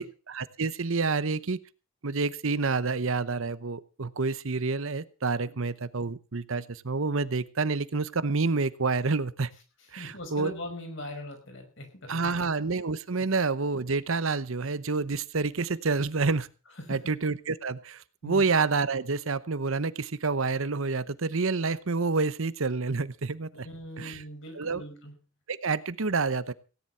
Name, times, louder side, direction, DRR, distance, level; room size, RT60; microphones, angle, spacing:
voice 1, 0.0-1.6 2.0-9.5 9.9-10.5 12.1-16.5 16.9-23.7 24.0-24.2 24.5-24.8 25.5-26.5, right 4 dB, 70° right, 16 dB, 0.9 m, -28 dB
voice 2, 10.0-12.4 16.8-17.0 18.2-18.4 23.6-25.1, left 1 dB, 60° left, 5 dB, 5.5 m, -40 dB
17.0 x 10.5 x 5.6 m, 0.34 s
head